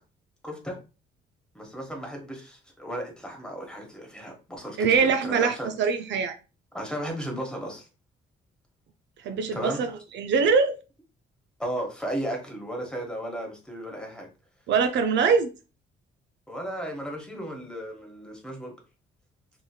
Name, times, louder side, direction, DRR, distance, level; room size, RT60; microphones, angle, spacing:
voice 1, 0.4-0.8 1.5-5.7 6.7-7.9 9.5-9.9 11.6-14.3 16.5-18.7, equal, 5° left, 1.1 m, -35 dB
voice 2, 4.8-6.4 9.2-10.8 14.7-15.5, right 5 dB, 65° right, 0.4 m, -23 dB
2.9 x 2.7 x 2.3 m
cardioid pair, 90°, 20 cm